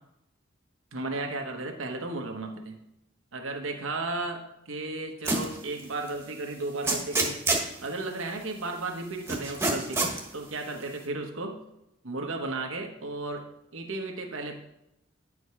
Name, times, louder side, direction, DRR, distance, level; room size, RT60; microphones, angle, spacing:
voice 1, 0.9-2.8 3.3-7.4 7.8-11.6 12.0-13.5 13.7-14.6, right 2 dB, 90° right, 3 dB, 1.2 m, -34 dB
sound 1, 5.2-5.6 6.1-6.2 6.8-7.7 9.3-10.2, right 2 dB, 10° right, 1.1 m, -26 dB
9.8 x 5.0 x 4.8 m, 0.84 s
head